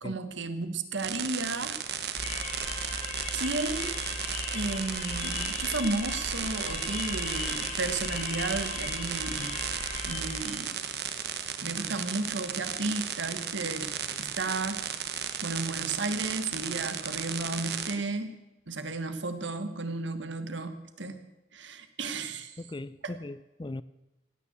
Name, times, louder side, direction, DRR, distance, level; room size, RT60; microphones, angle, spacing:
voice 1, 0.0-1.8 3.3-4.0 4.5-9.5 10.1-10.8 11.6-14.9 15.4-18.3 18.7-21.2 21.5-22.6 23.0-23.1, right 3 dB, 80° right, 1.4 m, -33 dB
sound 1, 1.0-17.9, right 8 dB, 55° right, 1.2 m, -35 dB
sound 2, 2.2-10.7, left 3 dB, 45° left, 2.6 m, -37 dB
voice 2, 22.6-23.8, left 2 dB, 25° left, 0.4 m, -39 dB
16.5 x 9.5 x 8.0 m
head